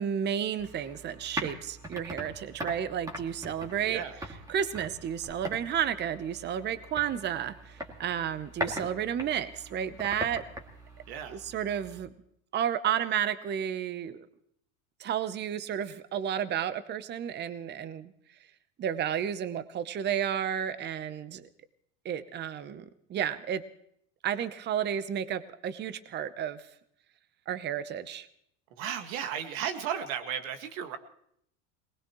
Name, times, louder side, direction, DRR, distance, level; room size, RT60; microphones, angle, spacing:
voice 1, 0.0-4.0 4.5-10.4 11.3-12.1 12.5-14.3 15.0-18.1 18.8-21.5 22.0-23.6 24.2-26.7 27.5-28.3, right 9 dB, 25° right, 13 dB, 0.8 m, -32 dB
sound 1, 0.6-12.0, equal, 10° right, 2.1 m, -41 dB
voice 2, 3.8-4.1 11.1-11.4 28.8-31.0, right 9 dB, 70° right, 7 dB, 1.9 m, -34 dB
22.0 x 19.5 x 3.1 m, 0.70 s
supercardioid pair, 130°, 41 cm